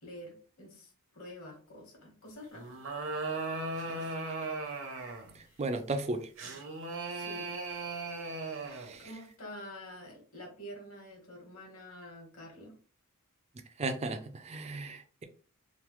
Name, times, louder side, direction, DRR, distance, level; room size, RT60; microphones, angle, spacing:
voice 1, 0.0-2.8 3.8-4.2 5.4-5.6 7.1-7.5 9.0-12.7, left 1 dB, 65° left, 1.3 m, -48 dB
sound 1, 2.5-5.4 6.4-9.0, right 3 dB, 60° right, 0.7 m, -37 dB
voice 2, 5.3-6.3 8.7-9.1 13.8-15.2, right 2 dB, 30° right, 0.3 m, -35 dB
3.0 x 2.0 x 3.0 m
head